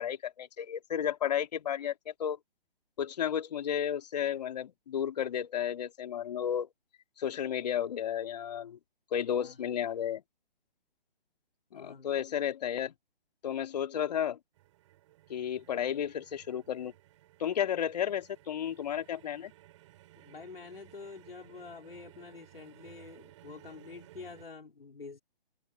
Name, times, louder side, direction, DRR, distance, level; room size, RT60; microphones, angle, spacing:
voice 1, 0.0-2.4 3.0-6.7 7.2-8.8 9.1-10.2 11.7-12.9 13.4-14.4 15.3-16.9 17.4-19.5, left 9 dB, 45° left, 3.2 m, -33 dB
voice 2, 9.4-9.7 11.7-12.1 20.2-25.2, left 4 dB, 75° left, 5.2 m, -47 dB
sound 1, 14.5-24.5, right 15 dB, 30° right, 6.5 m, -58 dB
figure-of-eight pair, 145°, 29 cm